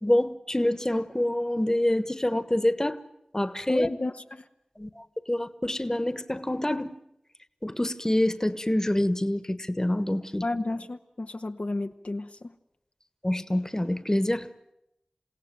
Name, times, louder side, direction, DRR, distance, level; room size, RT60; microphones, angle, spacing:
voice 1, 0.0-3.0 3.3-3.9 4.8-7.0 7.6-10.4 13.2-14.5, left 1 dB, 25° left, 13 dB, 1.4 m, -26 dB
voice 2, 3.7-4.4 10.4-12.5, left 2 dB, 70° left, 5 dB, 1.1 m, -32 dB
28.5 x 17.0 x 9.3 m, 0.86 s
wide cardioid pair, 45°, 2 cm